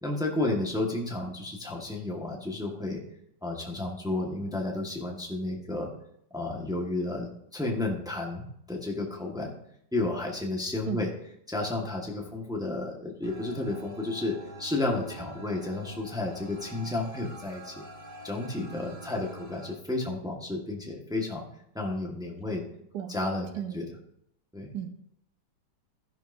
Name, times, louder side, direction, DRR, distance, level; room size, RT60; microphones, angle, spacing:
voice 1, 0.0-3.0 3.4-5.9 6.3-9.5 9.9-11.1 11.5-17.7 18.2-21.5 21.7-22.6 23.1-23.5 23.7-23.8 24.5-24.7, left 2 dB, ahead, 0 dB, 1.3 m, -32 dB
voice 2, 10.9-11.0 22.9-23.2 23.5-23.8 24.7-24.9, right 10 dB, 65° right, 8 dB, 1.2 m, -34 dB
sound 1, 13.2-19.7, right 1 dB, 30° right, 1.3 m, -46 dB
13.0 x 10.5 x 2.7 m, 0.75 s
omnidirectional pair, 2.0 m